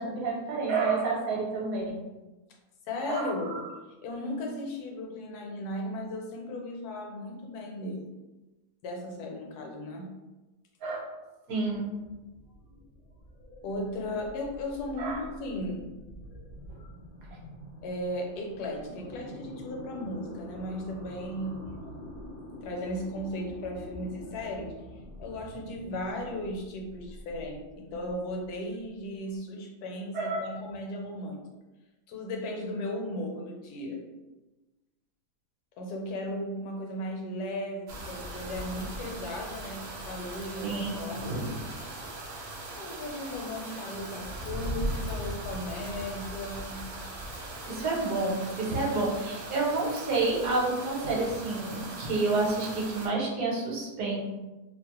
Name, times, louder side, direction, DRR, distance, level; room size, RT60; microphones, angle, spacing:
voice 1, 0.0-2.0 3.1-3.6 10.8-11.1 11.5-11.9 15.0-15.2 16.7-16.8 30.1-30.5 40.6-41.7 47.7-54.2, right 3 dB, 65° right, -3 dB, 1.1 m, -29 dB
voice 2, 2.9-3.6 4.0-8.1 8.8-10.2 13.6-15.9 17.8-21.8 22.6-24.7 25.2-31.4 32.1-34.0 35.8-41.5 42.8-46.9, left 1 dB, 75° left, 2 dB, 1.1 m, -36 dB
sound 1, 11.6-29.3, equal, 55° left, 0.6 m, -47 dB
sound 2, 37.9-53.1, right 1 dB, 80° right, 0.5 m, -39 dB
2.8 x 2.0 x 2.9 m, 1.1 s
omnidirectional pair, 1.7 m